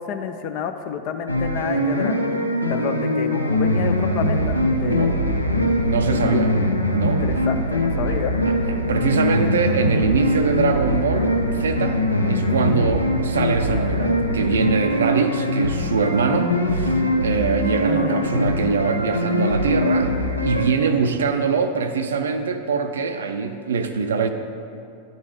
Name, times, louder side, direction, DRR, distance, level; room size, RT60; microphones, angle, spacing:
voice 1, 0.0-2.1 2.7-5.2 6.1-6.7 7.0-8.3 12.8-12.9 17.9-18.3, left 8 dB, 45° left, 7 dB, 0.4 m, -29 dB
sound 1, 1.3-20.7, left 1 dB, 90° left, 0.6 m, -22 dB
voice 2, 4.8-5.1 5.9-6.5 6.9-7.5 8.9-20.1 20.4-24.3, right 5 dB, 65° right, 7 dB, 0.4 m, -23 dB
10.0 x 3.9 x 4.9 m, 2.7 s
figure-of-eight pair, 90°, 0 cm